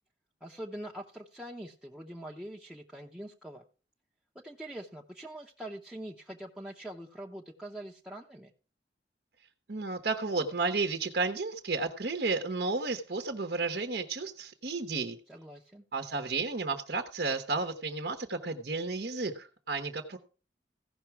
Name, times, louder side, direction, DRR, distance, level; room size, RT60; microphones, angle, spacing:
voice 1, 0.4-3.6 4.4-8.5 15.3-15.8, right 1 dB, 5° right, -1 dB, 0.7 m, -44 dB
voice 2, 9.7-15.2 15.9-20.2, right 3 dB, 60° right, 5 dB, 1.0 m, -32 dB
15.5 x 6.0 x 4.6 m, 0.37 s
head